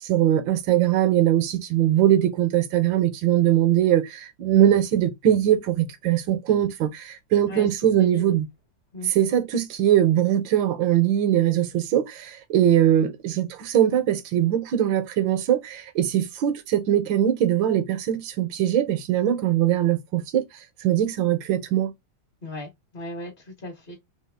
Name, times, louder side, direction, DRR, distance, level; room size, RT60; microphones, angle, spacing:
voice 1, 0.0-8.5 9.1-20.4 20.8-21.9, right 11 dB, 75° right, 1.4 m, -21 dB
voice 2, 22.4-24.0, left 1 dB, 30° left, 1.1 m, -37 dB
3.5 x 3.0 x 3.3 m
omnidirectional pair, 2.3 m